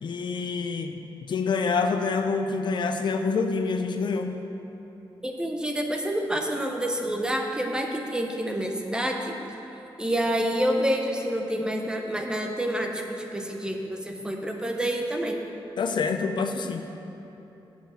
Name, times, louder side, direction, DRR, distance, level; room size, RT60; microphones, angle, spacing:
voice 1, 0.0-4.4 15.8-16.8, left 4 dB, 60° left, 6 dB, 0.5 m, -27 dB
voice 2, 5.2-9.4 10.0-15.4, equal, 10° right, 2 dB, 0.7 m, -28 dB
7.4 x 7.0 x 7.6 m, 3.0 s
wide cardioid pair, 175°, 9 cm